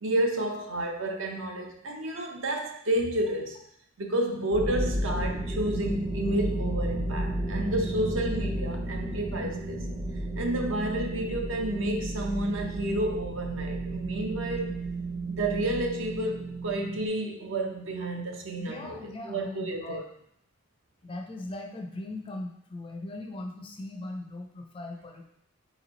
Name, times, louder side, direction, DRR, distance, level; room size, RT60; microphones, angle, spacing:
voice 1, 0.0-3.6 4.0-9.8 10.4-14.7 15.4-19.0 19.2-20.0, right 1 dB, 70° right, 2 dB, 0.7 m, -30 dB
sound 1, 4.5-17.1, right 1 dB, 25° right, 0.6 m, -33 dB
voice 2, 18.6-20.0 21.0-25.3, left 2 dB, 25° left, 3 dB, 0.4 m, -39 dB
4.3 x 3.1 x 3.9 m, 0.72 s
head